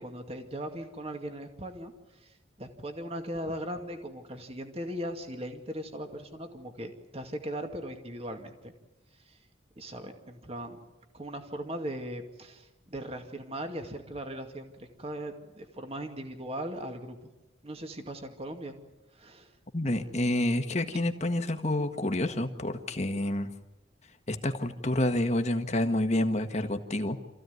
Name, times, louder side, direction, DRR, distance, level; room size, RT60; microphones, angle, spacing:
voice 1, 0.0-8.7 9.2-9.4 9.8-10.8 11.1-17.2 17.6-18.8 19.1-19.6 19.8-19.9, right 1 dB, 30° right, 5 dB, 2.2 m, -39 dB
voice 2, 19.7-23.5 24.3-27.2, left 1 dB, 35° left, 7 dB, 1.6 m, -28 dB
27.5 x 15.5 x 9.5 m, 1.1 s
head